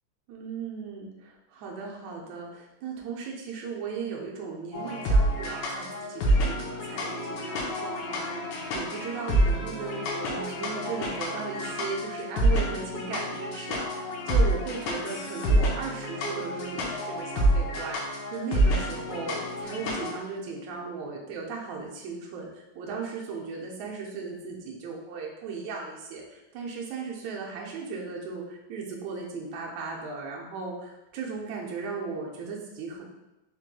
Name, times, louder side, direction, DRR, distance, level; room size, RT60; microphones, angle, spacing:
voice 1, 0.3-18.0 18.3-19.3 19.6-33.0, right 5 dB, 75° right, -2 dB, 1.8 m, -37 dB
sound 1, 4.7-20.1, right 1 dB, 80° left, 2.2 m, -28 dB
Bowed string instrument, 6.7-11.9, equal, 65° left, 1.1 m, -43 dB
5.8 x 3.0 x 2.2 m, 0.97 s
omnidirectional pair, 3.8 m